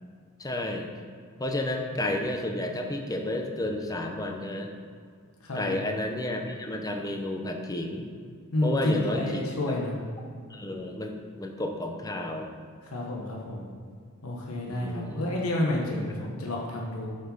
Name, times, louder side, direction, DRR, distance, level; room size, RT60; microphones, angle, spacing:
voice 1, 0.4-0.9 1.4-4.7 5.5-8.1 8.6-9.5 10.5-11.1 11.4-12.5 14.7-15.2, left 1 dB, 15° left, 3 dB, 0.8 m, -31 dB
voice 2, 5.4-5.8 8.5-9.9 12.9-13.6 14.2-17.1, left 1 dB, 90° left, -2 dB, 1.2 m, -29 dB
7.7 x 5.4 x 5.4 m, 2.1 s
head